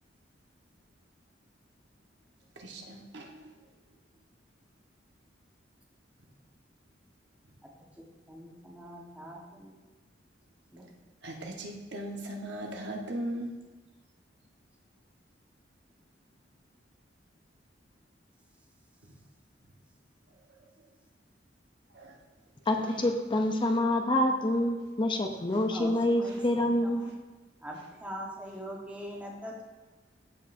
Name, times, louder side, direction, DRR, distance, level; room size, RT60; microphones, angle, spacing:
voice 1, 2.6-3.5 11.2-13.5 21.9-22.1 22.7-23.0, right 1 dB, 65° right, 1 dB, 1.2 m, -38 dB
voice 2, 8.0-9.8 10.7-10.8 25.7-26.4 26.8-27.1 27.6-29.6, equal, 10° right, -2 dB, 1.3 m, -42 dB
voice 3, 22.7-27.0, left 1 dB, 25° left, 4 dB, 0.6 m, -27 dB
14.5 x 5.3 x 2.6 m, 1.3 s
head